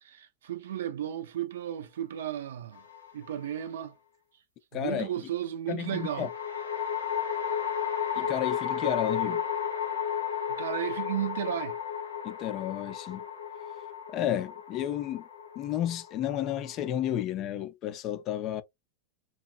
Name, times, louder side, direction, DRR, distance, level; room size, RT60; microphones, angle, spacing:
voice 1, 0.0-2.8 3.1-3.9 4.7-6.3 10.5-11.8, right 11 dB, 60° right, 0.5 m, -34 dB
sound 1, 2.7-3.4 5.9-17.2, left 8 dB, 85° left, 1.1 m, -33 dB
voice 2, 4.7-5.1 5.7-6.3 8.2-9.4 12.2-13.2 14.1-15.2 15.6-18.6, left 11 dB, 35° left, 0.5 m, -32 dB
2.9 x 2.2 x 2.4 m
figure-of-eight pair, 90°, 0 cm